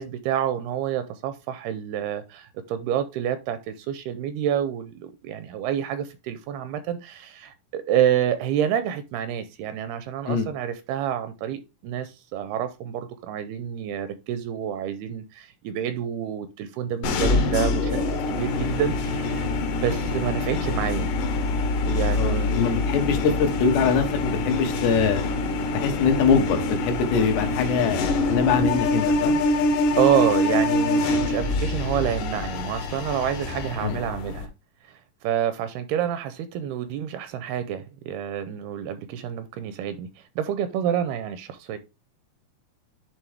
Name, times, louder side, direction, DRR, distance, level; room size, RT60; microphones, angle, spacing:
voice 1, 0.0-19.5 19.7-21.1 21.9-22.5 30.0-34.5 34.9-41.8, right 10 dB, 80° right, 2.4 m, -28 dB
sound 1, 17.0-34.5, left 2 dB, 65° left, 2.3 m, -25 dB
voice 2, 22.1-25.2 25.7-29.4 33.8-34.0, left 6 dB, 80° left, 3.4 m, -23 dB
11.0 x 3.7 x 3.4 m
omnidirectional pair, 4.9 m